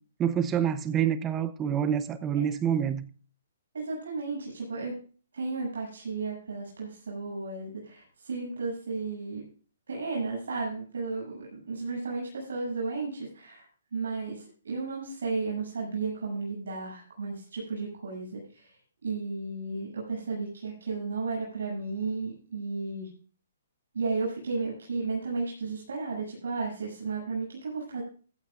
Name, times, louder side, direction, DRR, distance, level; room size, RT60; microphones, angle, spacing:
voice 1, 0.2-3.0, right 9 dB, 15° right, 0.9 m, -27 dB
voice 2, 3.7-4.9 5.3-9.4 9.9-18.8 19.0-23.1 23.9-28.0, right 4 dB, 85° right, 7.8 m, -34 dB
15.5 x 14.5 x 2.5 m
hypercardioid pair, 155°, 0 cm